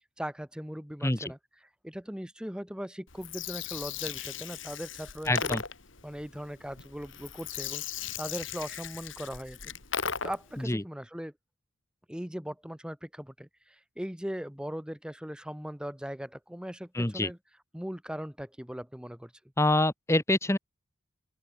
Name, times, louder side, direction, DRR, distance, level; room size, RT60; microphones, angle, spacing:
voice 1, 0.2-1.4 1.8-5.6 6.0-9.7 10.2-11.3 12.1-17.4 17.7-19.3, equal, 5° right, 1.2 m, -39 dB
Gurgling, 3.1-10.6, left 7 dB, 85° left, 3.9 m, -37 dB
voice 2, 5.3-5.6 10.7-10.8 16.9-17.3 19.6-20.6, left 1 dB, 15° left, 1.3 m, -26 dB
open air
head